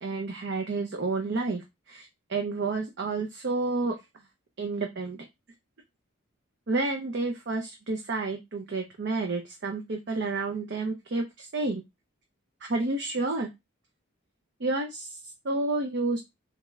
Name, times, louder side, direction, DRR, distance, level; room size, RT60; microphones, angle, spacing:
voice 1, 0.0-3.9 4.6-5.2 6.7-11.8 12.6-13.5 14.6-16.2, right 3 dB, 55° right, 3 dB, 0.6 m, -30 dB
3.6 x 3.5 x 3.0 m, 0.21 s
head